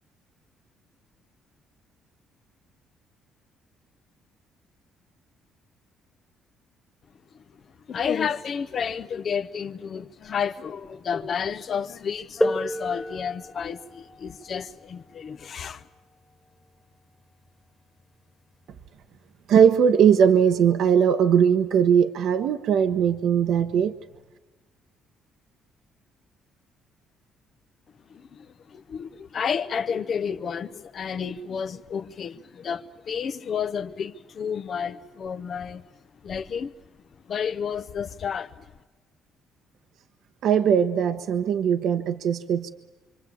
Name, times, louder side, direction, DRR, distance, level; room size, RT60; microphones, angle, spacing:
voice 1, 7.9-15.8 28.1-35.8 36.2-36.7 37.3-38.5, left 7 dB, 50° left, 0.8 m, -31 dB
sound 1, 12.4-17.8 18.9-19.0 19.8-20.0, left 1 dB, 15° left, 1.7 m, -33 dB
voice 2, 19.5-23.9 40.4-42.7, right 8 dB, 70° right, 1.1 m, -20 dB
26.0 x 25.0 x 8.6 m
cardioid pair, 90°, 0 cm